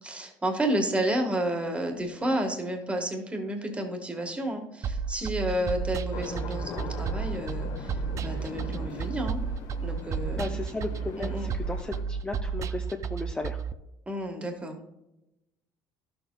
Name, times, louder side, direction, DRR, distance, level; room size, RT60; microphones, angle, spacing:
voice 1, 0.0-9.4 9.8-10.6 11.1-11.5 14.1-14.8, right 1 dB, 15° right, 4 dB, 1.4 m, -31 dB
sound 1, 4.8-13.7, right 6 dB, 40° right, 0.4 m, -32 dB
sound 2, 6.1-12.0, left 5 dB, 65° left, 1.1 m, -41 dB
voice 2, 10.3-12.8 13.1-13.6, left 2 dB, 10° left, 3 dB, 0.6 m, -35 dB
12.0 x 6.9 x 2.3 m, 0.92 s
supercardioid pair, 100°, 8 cm